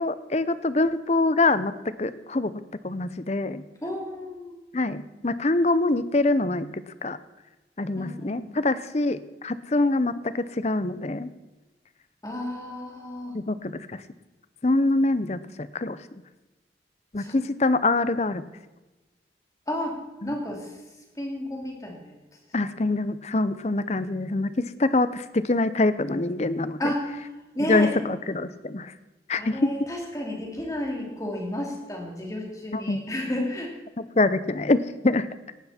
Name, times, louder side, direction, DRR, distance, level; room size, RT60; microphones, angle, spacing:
voice 1, 0.0-1.7 2.0-2.5 2.8-3.6 4.7-7.2 7.8-11.3 13.3-14.0 14.6-16.0 17.1-18.4 20.2-20.3 22.5-26.9 27.7-28.9 29.3-29.7 32.7-33.0 34.0-35.3, left 2 dB, 40° left, 14 dB, 0.7 m, -25 dB
voice 2, 3.8-4.5 8.0-8.6 12.2-13.4 17.2-17.4 19.7-20.0 20.2-20.8 21.1-22.2 26.8-27.1 27.5-28.0 29.4-33.7, left 1 dB, 20° left, 0 dB, 2.8 m, -32 dB
18.0 x 11.5 x 4.3 m, 1.1 s
head